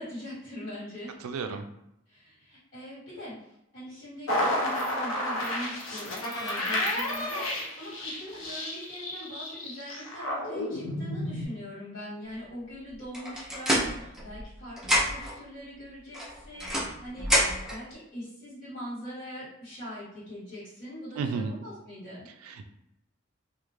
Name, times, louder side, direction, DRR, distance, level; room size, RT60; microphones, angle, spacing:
voice 1, 0.0-1.2 2.1-17.3 17.7-22.3, equal, 45° left, -11 dB, 1.3 m, -42 dB
voice 2, 1.2-1.7 21.2-21.5 22.4-22.7, right 4 dB, 80° right, 7 dB, 0.3 m, -32 dB
sound 1, 4.3-11.4, left 1 dB, 75° left, 0.6 m, -31 dB
sound 2, 13.1-14.5 14.8-15.4 16.1-17.8, equal, 5° right, 0.5 m, -27 dB
2.4 x 2.0 x 3.1 m, 0.81 s
head